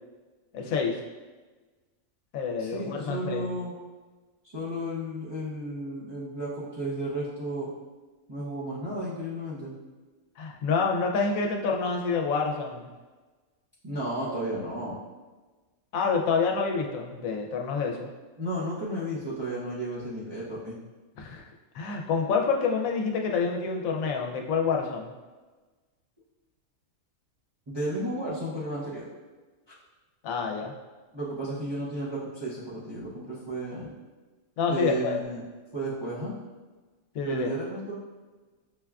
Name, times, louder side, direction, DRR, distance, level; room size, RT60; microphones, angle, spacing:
voice 1, 0.5-1.0 2.3-3.5 10.4-12.9 15.9-18.1 21.2-21.5 21.7-25.1 30.2-30.7 34.6-35.2 37.1-37.5, left 5 dB, 90° left, 1 dB, 1.0 m, -27 dB
voice 2, 2.6-3.7 4.5-7.7 8.3-9.7 13.8-14.9 18.4-20.8 27.7-29.1 31.1-33.9 34.7-35.4 35.7-36.4 37.2-38.0, right 1 dB, 30° right, -9 dB, 0.5 m, -33 dB
5.9 x 2.2 x 2.3 m, 1.3 s
omnidirectional pair, 1.4 m